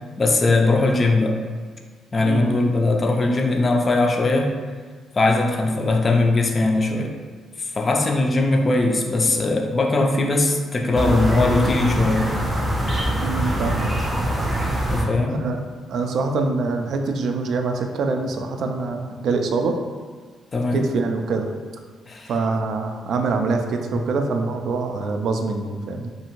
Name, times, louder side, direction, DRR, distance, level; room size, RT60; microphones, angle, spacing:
voice 1, 0.2-1.4 2.1-4.5 5.2-7.1 7.6-12.3 14.9-15.4 20.5-20.8 22.1-22.3, left 2 dB, 35° left, 2 dB, 0.3 m, -20 dB
sound 1, 10.9-15.0, right 1 dB, 15° right, 0.6 m, -23 dB
voice 2, 13.2-14.0 15.2-15.6 15.9-19.8 20.7-21.5 22.3-26.1, right 3 dB, 65° right, 4 dB, 0.3 m, -24 dB
2.6 x 2.5 x 2.9 m, 1.5 s
cardioid pair, 90°, 0 cm